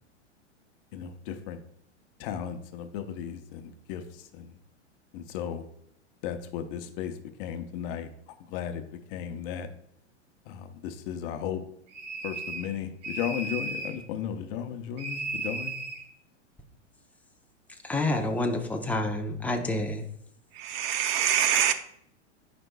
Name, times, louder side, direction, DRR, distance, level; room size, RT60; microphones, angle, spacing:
voice 1, 0.9-1.6 2.2-4.0 4.3-4.5 5.1-5.6 6.2-7.1 7.4-8.1 8.5-9.7 10.5-11.6 12.2-15.7, left 9 dB, 50° left, 8 dB, 0.9 m, -35 dB
sound 1, 11.9-12.7 13.0-14.0 15.0-16.0, right 3 dB, 75° right, 1.8 m, -35 dB
voice 2, 17.8-20.0, left 2 dB, 5° left, 3 dB, 0.8 m, -28 dB
voice 3, 20.5-21.7, right 10 dB, 45° right, 9 dB, 0.7 m, -25 dB
11.0 x 5.2 x 2.3 m, 0.70 s
hypercardioid pair, 115°, 36 cm